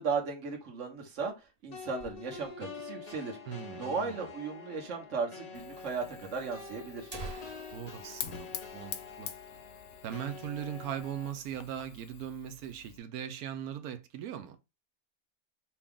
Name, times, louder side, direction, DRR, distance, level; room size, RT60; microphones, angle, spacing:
voice 1, 0.0-1.3 1.6-3.4 3.8-7.1, right 5 dB, 55° right, 1.5 m, -36 dB
sound 1, 0.9-2.7 3.1-3.2 3.4-3.5 4.1-4.2 5.1-5.3 5.6-5.7 6.4-6.5 6.9-9.5 9.8-9.9 10.3-10.6 11.0-11.6, right 3 dB, 30° right, 0.9 m, -48 dB
sound 2, 1.7-11.3, left 5 dB, 40° left, 0.6 m, -46 dB
voice 2, 3.5-4.3 7.7-9.3 10.0-14.6, right 9 dB, 85° right, 1.1 m, -39 dB
Fire, 5.5-13.0, left 9 dB, 75° left, 1.0 m, -47 dB
5.8 x 2.3 x 3.6 m
omnidirectional pair, 1.5 m